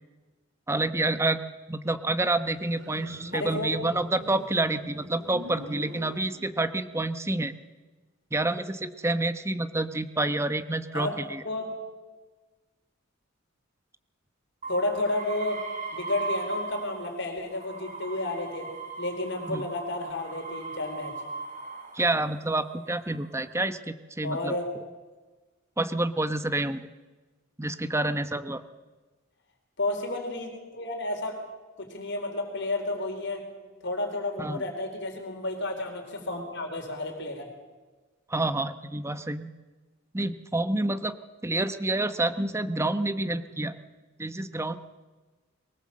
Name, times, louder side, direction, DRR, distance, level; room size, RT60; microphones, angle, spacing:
voice 1, 0.7-1.4 1.7-7.5 8.3-11.4 19.5-19.6 21.9-24.5 25.8-26.9 27.6-28.6 34.4-34.7 38.3-39.5 40.1-41.2 41.4-43.8 44.2-44.8, right 2 dB, 15° right, 10 dB, 0.9 m, -28 dB
Motorcycle, 2.4-6.8, equal, 65° right, 6.1 m, -44 dB
voice 2, 3.3-3.8 10.9-11.1 11.4-11.7 14.7-15.6 15.9-18.7 19.0-21.2 24.2-24.7 29.8-31.4 31.8-33.5 33.8-37.5, left 2 dB, 60° left, 3 dB, 4.2 m, -31 dB
sound 1, 14.6-17.2 17.5-22.1 22.8-23.4, right 3 dB, 40° right, 3.8 m, -38 dB
22.5 x 19.5 x 7.6 m, 1.3 s
head